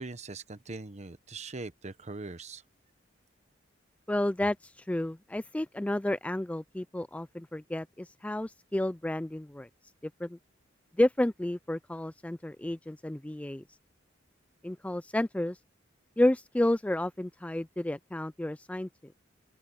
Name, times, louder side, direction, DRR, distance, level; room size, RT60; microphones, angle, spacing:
voice 1, 0.0-2.6, right 3 dB, 35° right, 1.0 m, -41 dB
voice 2, 4.1-9.7 10.0-10.4 11.0-13.6 14.6-15.6 16.2-18.9, left 1 dB, 5° left, 0.3 m, -31 dB
open air
head